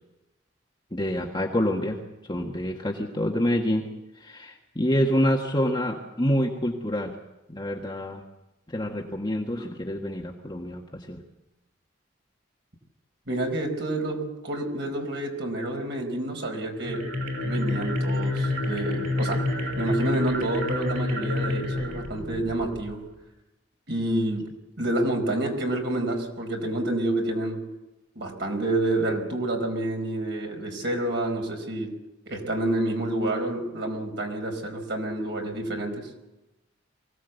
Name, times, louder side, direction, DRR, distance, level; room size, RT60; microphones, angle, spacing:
voice 1, 0.9-2.0 2.3-3.9 4.2-7.1 7.5-8.2 8.7-11.2, equal, 20° left, 0 dB, 1.7 m, -27 dB
voice 2, 13.3-17.1 17.4-19.4 19.8-23.1 23.9-27.6 28.1-32.0 32.3-36.1, right 1 dB, 60° right, 3 dB, 4.8 m, -28 dB
sound 1, 16.7-23.0, left 2 dB, 85° right, 6.6 m, -28 dB
24.0 x 17.5 x 8.2 m, 0.98 s
head